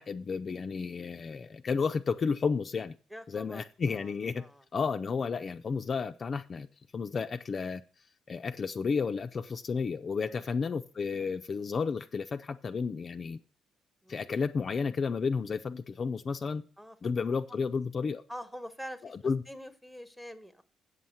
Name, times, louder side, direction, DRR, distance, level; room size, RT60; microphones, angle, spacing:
voice 1, 0.0-3.0 3.3-4.4 4.7-6.7 6.9-7.8 8.3-13.4 14.1-16.6 17.0-18.2 19.1-19.4, left 5 dB, 45° left, 6 dB, 0.5 m, -32 dB
voice 2, 3.1-4.6 10.2-10.4 14.0-14.3 16.8-17.0 17.5-17.7 18.3-20.6, equal, 5° right, 9 dB, 1.2 m, -46 dB
8.1 x 5.6 x 7.8 m, 0.38 s
cardioid pair, 90°, 0 cm